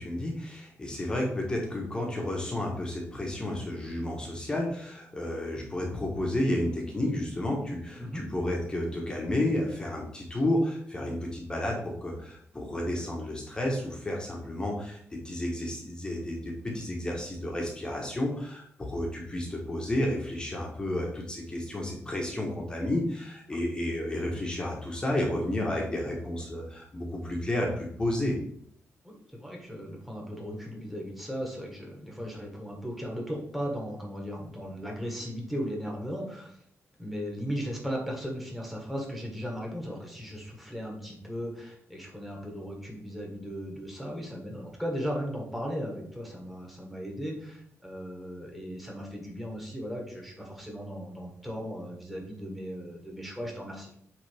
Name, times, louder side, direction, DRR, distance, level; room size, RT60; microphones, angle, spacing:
voice 1, 0.0-28.4, left 1 dB, 15° left, -1 dB, 1.2 m, -31 dB
voice 2, 29.0-36.6 37.0-53.9, equal, ahead, -1 dB, 1.5 m, -37 dB
8.4 x 3.5 x 3.4 m, 0.67 s
wide cardioid pair, 170°, 5 cm